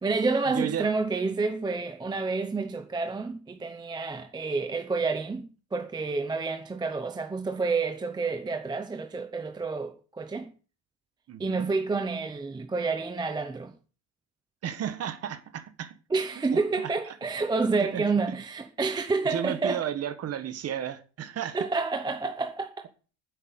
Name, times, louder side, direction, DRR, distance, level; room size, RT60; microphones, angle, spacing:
voice 1, 0.0-10.5 11.4-13.7 16.1-19.9 21.5-22.9, right 4 dB, 10° right, 0.7 m, -29 dB
voice 2, 0.5-0.9 11.3-11.7 14.6-15.9 16.5-16.6 17.9-18.0 19.3-21.6, right 9 dB, 30° right, 1.5 m, -33 dB
10.0 x 8.3 x 9.5 m
cardioid pair, 180°, 49 cm